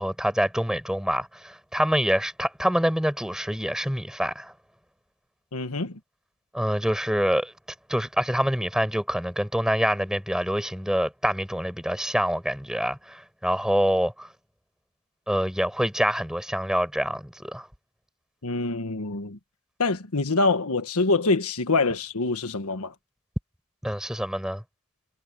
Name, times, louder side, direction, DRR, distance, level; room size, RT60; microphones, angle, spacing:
voice 1, 0.0-4.5 6.5-7.5 7.9-14.3 15.3-17.7 23.8-24.6, equal, 5° right, 5.9 m, -26 dB
voice 2, 5.5-6.0 18.4-19.4 19.8-22.9, left 3 dB, 80° left, 1.4 m, -25 dB
head